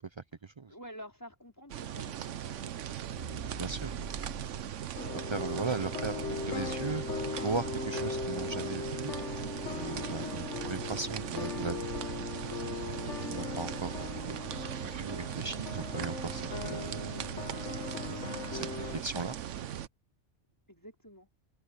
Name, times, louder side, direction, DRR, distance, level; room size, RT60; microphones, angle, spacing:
voice 1, 0.7-3.0 20.7-21.3, equal, 15° left, 4.7 m, -50 dB
sound 1, 1.7-19.9, right 10 dB, 85° right, 1.1 m, -39 dB
sound 2, 3.1-7.6, right 2 dB, 65° right, 3.6 m, -48 dB
voice 2, 3.6-3.9 5.1-7.0 7.4-9.1 9.7-12.0 12.9-13.0 13.3-14.4 14.8-16.9 18.5-19.4, right 4 dB, 45° right, 0.3 m, -37 dB
sound 3, 4.9-19.0, left 5 dB, 75° left, 1.6 m, -39 dB
open air
omnidirectional pair, 1.2 m